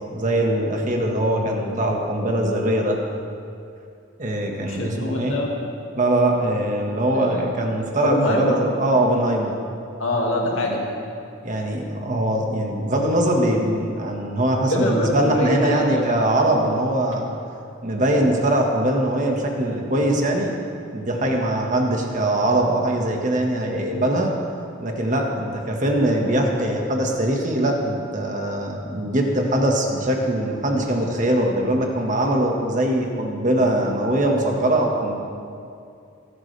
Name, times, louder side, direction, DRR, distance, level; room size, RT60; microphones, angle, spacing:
voice 1, 0.1-3.0 4.2-5.4 6.0-9.5 11.4-17.3 17.8-20.5 20.9-24.3 24.8-35.2, right 1 dB, 40° right, 1 dB, 1.7 m, -22 dB
voice 2, 4.7-5.7 7.1-7.5 8.0-8.7 10.0-10.9 14.7-16.0 16.3-16.4, left 1 dB, 80° left, -2 dB, 2.2 m, -24 dB
21.0 x 11.0 x 3.4 m, 2.5 s
head